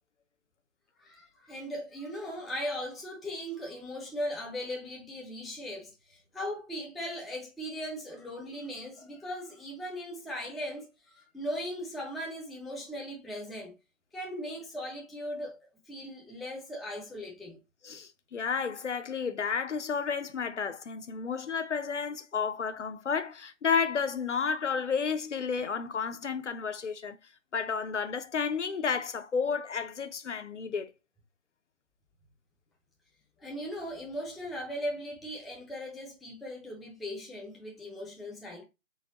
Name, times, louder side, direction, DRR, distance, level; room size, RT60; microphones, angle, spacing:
voice 1, 1.0-13.7 14.1-17.6 33.4-38.6, equal, ahead, 0.4 m, -38 dB
voice 2, 17.8-27.2 27.5-30.9, left 6 dB, 65° left, 0.6 m, -31 dB
3.9 x 3.4 x 2.8 m
figure-of-eight pair, 160°, 39 cm